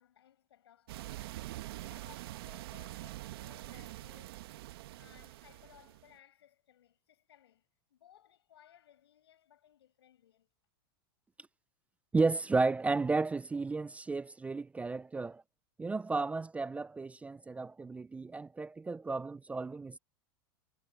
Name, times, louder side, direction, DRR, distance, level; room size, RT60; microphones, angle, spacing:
voice 1, 0.0-4.4 5.0-10.5, left 11 dB, 85° left, 7.8 m, -62 dB
sound 1, 0.9-6.1, right 16 dB, 70° right, 1.4 m, -45 dB
voice 2, 12.1-15.4 15.8-20.0, right 3 dB, 10° right, 0.4 m, -33 dB
hypercardioid pair, 120°, 13 cm